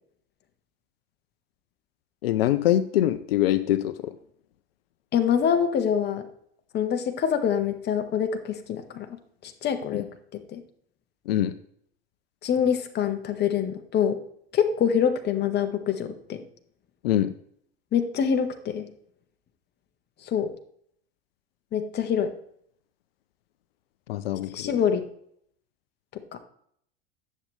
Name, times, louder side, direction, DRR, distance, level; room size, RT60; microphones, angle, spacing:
voice 1, 2.2-4.1 9.9-10.0 11.3-11.5 17.0-17.3 24.1-24.7, left 12 dB, 75° left, 14 dB, 0.6 m, -24 dB
voice 2, 5.1-6.3 6.7-10.6 12.4-14.2 14.5-16.4 17.9-18.9 20.2-20.5 21.7-22.3 24.5-25.0 26.1-26.4, left 8 dB, 35° left, 7 dB, 1.2 m, -25 dB
9.9 x 7.5 x 3.3 m, 0.66 s
hypercardioid pair, 85°, 30 cm